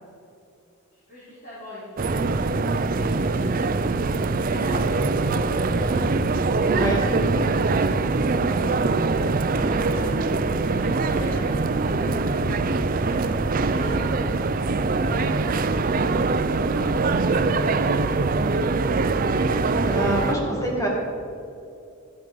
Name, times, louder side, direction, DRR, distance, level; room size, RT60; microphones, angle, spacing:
voice 1, 0.9-3.4 4.0-4.2 4.4-6.0 6.9-7.3 8.2-8.6 9.3-10.3 10.7-12.8 13.0-14.1 14.9-15.3 16.3-18.3, equal, 40° left, -9 dB, 3.4 m, -40 dB
sound 1, 2.0-20.4, right 3 dB, 40° right, 0.5 m, -23 dB
voice 2, 6.7-7.1 19.8-20.9, right 1 dB, 15° left, -2 dB, 2.2 m, -26 dB
12.5 x 9.6 x 5.2 m, 2.6 s
head